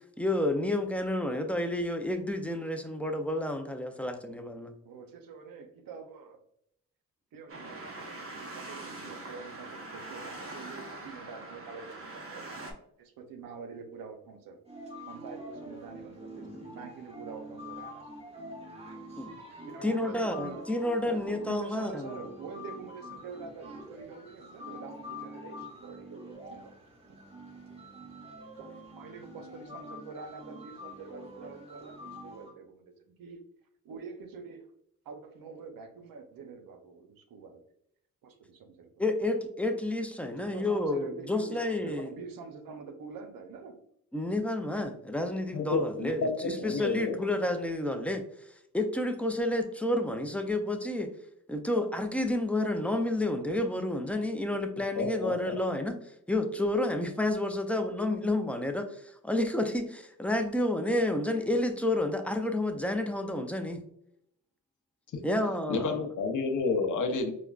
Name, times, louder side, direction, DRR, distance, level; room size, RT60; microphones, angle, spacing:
voice 1, 0.2-4.7 16.4-16.6 19.2-19.3 19.8-22.1 39.0-42.1 44.1-48.2 48.7-51.1 51.5-56.0 56.3-59.0 59.2-63.8 65.2-66.0, left 1 dB, 5° left, 6 dB, 0.4 m, -30 dB
voice 2, 4.8-6.4 7.3-12.6 13.0-14.6 15.1-18.4 19.7-20.7 21.0-26.2 26.5-26.8 27.1-27.2 28.6-28.7 29.0-33.4 33.8-34.7 35.1-37.6 38.2-38.9 40.5-43.8, right 5 dB, 80° right, 7 dB, 0.6 m, -46 dB
sound 1, 7.5-12.7, right 2 dB, 40° right, 0.7 m, -43 dB
sound 2, 14.7-32.5, equal, 15° right, 1.1 m, -46 dB
voice 3, 45.5-47.2 55.0-55.6 65.1-65.2 65.7-67.3, left 4 dB, 60° left, 5 dB, 0.7 m, -30 dB
4.8 x 2.2 x 2.3 m, 0.73 s
cardioid pair, 90°, 34 cm